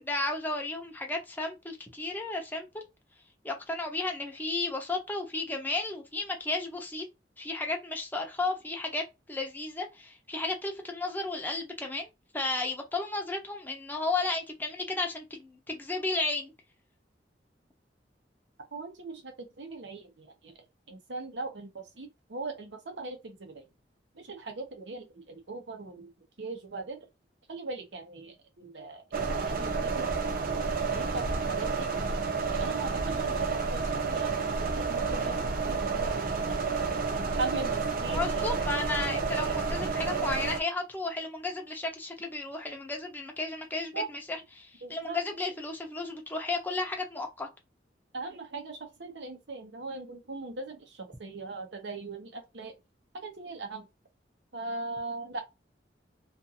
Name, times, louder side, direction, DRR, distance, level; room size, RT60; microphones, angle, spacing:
voice 1, 0.0-2.8 3.4-7.0 7.4-9.0 9.3-12.1 12.3-16.5 38.1-47.5, left 3 dB, 10° left, 0.6 m, -33 dB
voice 2, 18.7-20.5 20.9-23.6 24.2-26.1 26.4-27.0 27.5-31.9 32.4-35.3 35.7-36.4 37.1-38.4 43.9-44.1 44.8-45.2 48.1-52.7 53.1-53.9 54.5-55.4, right 3 dB, 75° right, 0.8 m, -40 dB
sound 1, 29.1-40.6, right 4 dB, 55° right, 0.5 m, -30 dB
2.5 x 2.4 x 2.7 m
head